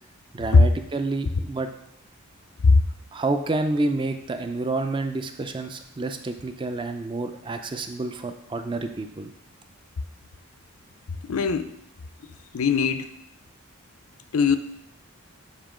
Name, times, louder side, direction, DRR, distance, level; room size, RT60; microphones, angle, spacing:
voice 1, 0.3-1.7 3.1-9.3, right 2 dB, 20° right, 7 dB, 0.4 m, -29 dB
voice 2, 11.2-11.7 12.5-13.1 14.3-14.6, left 4 dB, 75° left, 10 dB, 0.5 m, -18 dB
7.4 x 2.9 x 4.9 m, 0.78 s
head